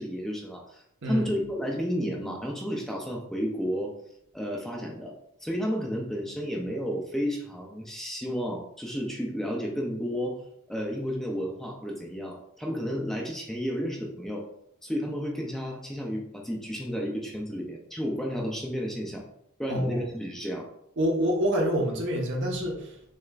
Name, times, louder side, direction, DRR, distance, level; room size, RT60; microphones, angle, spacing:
voice 1, 0.0-3.9 4.3-5.1 5.4-10.4 10.7-14.5 14.8-19.2 19.6-20.7, equal, ahead, -1 dB, 0.5 m, -32 dB
voice 2, 19.7-20.1 21.0-23.0, equal, 60° right, -1 dB, 1.1 m, -27 dB
6.3 x 3.4 x 2.4 m, 0.76 s
head